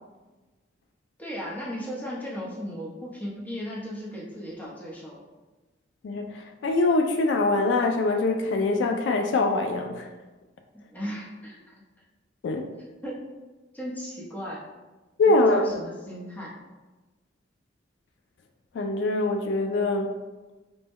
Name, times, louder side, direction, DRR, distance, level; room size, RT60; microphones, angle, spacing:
voice 1, 1.2-5.2 10.7-11.6 13.0-13.2 13.7-14.6 15.5-16.5, equal, 10° left, -5 dB, 0.7 m, -36 dB
voice 2, 6.0-10.1 12.4-12.7 15.2-15.7 18.7-20.1, left 2 dB, 70° left, 5 dB, 0.3 m, -23 dB
4.0 x 2.2 x 3.5 m, 1.2 s
head